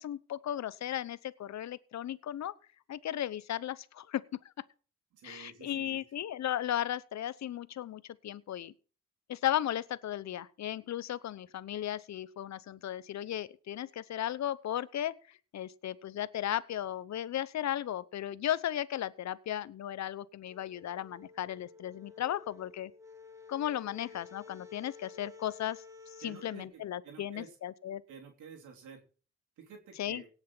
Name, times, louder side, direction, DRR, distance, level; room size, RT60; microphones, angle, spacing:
voice 1, 0.0-2.5 2.9-4.2 5.2-8.7 9.3-15.2 15.5-22.9 23.5-28.0 30.0-30.2, left 11 dB, 65° left, 18 dB, 0.9 m, -35 dB
voice 2, 5.1-6.0 26.2-27.6 28.1-29.0 29.6-30.3, right 6 dB, 85° right, 1 dB, 3.3 m, -51 dB
sound 1, 20.5-26.6, left 5 dB, 10° right, 2.4 m, -53 dB
17.5 x 6.5 x 6.1 m, 0.39 s
supercardioid pair, 60°, 29 cm